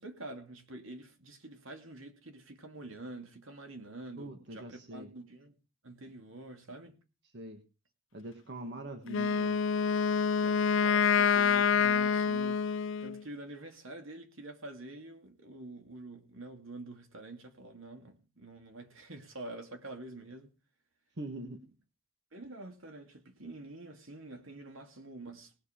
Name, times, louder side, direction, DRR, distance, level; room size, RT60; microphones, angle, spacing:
voice 1, 0.0-5.6 5.8-7.0 10.4-20.5 22.3-25.5, right 2 dB, 75° right, 2.5 m, -47 dB
voice 2, 4.2-5.1 7.3-7.6 8.1-9.6 21.2-21.6, right 1 dB, 55° right, 1.6 m, -43 dB
Wind instrument woodwind instrument, 9.1-13.2, left 6 dB, 65° left, 0.6 m, -27 dB
19.0 x 6.7 x 5.2 m
head